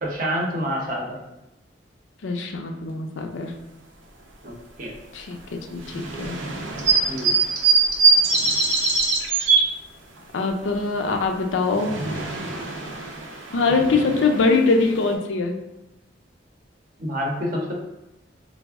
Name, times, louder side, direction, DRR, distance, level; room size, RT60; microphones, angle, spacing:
voice 1, 0.0-1.2 4.4-4.5 4.8-4.9 7.1-7.4 17.0-17.7, equal, 45° right, 0 dB, 0.6 m, -27 dB
voice 2, 2.2-3.5 5.1-6.4 10.3-11.9 13.5-15.5, left 3 dB, 80° left, 4 dB, 0.4 m, -23 dB
sound 1, 5.8-9.6 11.4-15.1, right 4 dB, 90° right, 0.6 m, -22 dB
3.4 x 2.0 x 3.4 m, 0.91 s
head